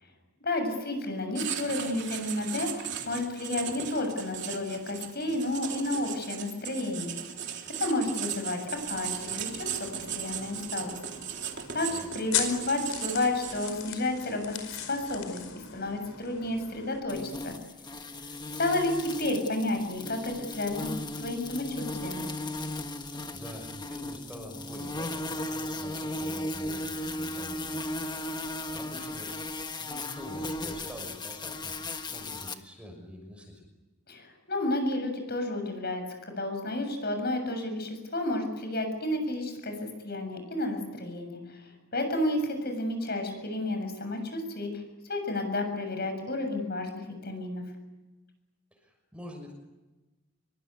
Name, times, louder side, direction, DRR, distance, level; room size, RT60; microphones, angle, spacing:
voice 1, 0.4-7.1 7.8-8.6 8.9-9.9 10.2-10.9 11.7-14.6 14.9-15.4 15.7-17.5 18.2-18.3 18.6-20.9 21.2-22.2 34.1-39.7 40.0-47.6, left 1 dB, 45° left, 6 dB, 7.3 m, -31 dB
Writing, 1.4-13.9, right 9 dB, 55° right, 3.4 m, -37 dB
sound 1, 8.8-17.0, left 8 dB, 70° left, 4.9 m, -39 dB
sound 2, 17.1-32.5, left 2 dB, 20° left, 1.5 m, -36 dB
voice 2, 23.1-27.9 28.7-29.3 29.8-31.7 32.1-33.6 48.7-49.5, left 1 dB, 5° right, 2 dB, 6.0 m, -45 dB
25.5 x 23.5 x 9.7 m, 1.1 s
head